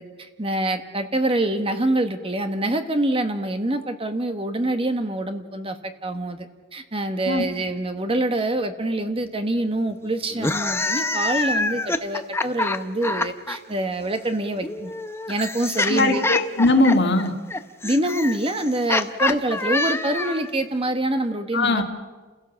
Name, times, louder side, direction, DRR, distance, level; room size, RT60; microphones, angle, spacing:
voice 1, 0.0-14.9 15.3-16.3 17.8-21.8, right 1 dB, 25° right, 7 dB, 1.2 m, -25 dB
sound 1, 10.3-13.6 14.6-20.5, left 2 dB, 10° left, 0.7 m, -26 dB
voice 2, 15.9-17.3 19.2-19.3 21.5-21.8, left 2 dB, 50° left, 4 dB, 2.0 m, -20 dB
29.5 x 16.0 x 7.1 m, 1.4 s
head